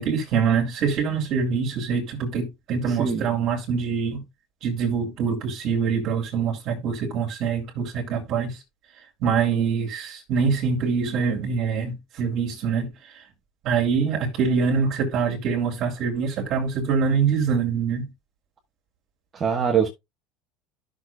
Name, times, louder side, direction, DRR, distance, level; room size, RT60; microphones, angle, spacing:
voice 1, 0.0-4.2 4.6-8.6 9.2-12.9 13.1-13.2 13.6-18.1, right 6 dB, 45° right, 2.7 m, -24 dB
voice 2, 2.9-3.2 19.3-19.9, right 7 dB, 25° right, 1.3 m, -23 dB
13.0 x 6.5 x 2.3 m
cardioid pair, 160°, 0 cm